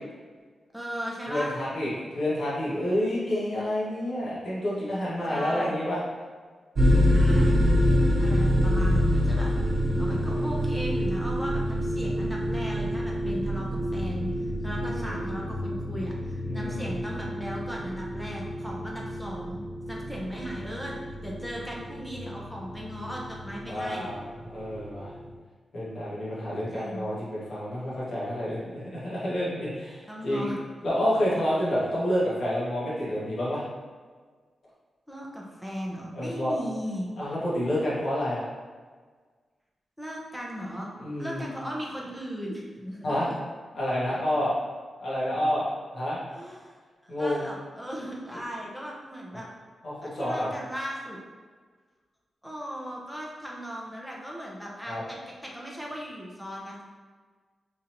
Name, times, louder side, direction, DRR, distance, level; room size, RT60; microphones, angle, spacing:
voice 1, 0.7-1.5 5.3-5.8 7.1-7.6 8.2-9.5 10.0-19.6 19.9-20.9 21.2-24.1 26.7-27.1 30.1-30.6 35.1-37.1 40.0-40.9 41.2-43.4 46.3-46.7 47.0-49.5 50.0-51.2 52.4-56.8, equal, ahead, -3 dB, 0.7 m, -37 dB
voice 2, 1.3-6.0 14.8-15.2 16.4-16.9 23.7-25.1 25.7-30.5 30.8-33.6 36.1-36.5 37.2-38.4 41.0-41.5 43.0-43.3 43.7-44.5 45.0-45.6 45.9-46.2 47.1-47.5 49.8-50.5 54.9-55.0, left 1 dB, 65° left, -8 dB, 1.5 m, -29 dB
sound 1, 6.8-25.3, equal, 60° right, 1.0 m, -27 dB
3.8 x 3.0 x 2.7 m, 1.5 s
wide cardioid pair, 115°, 0 cm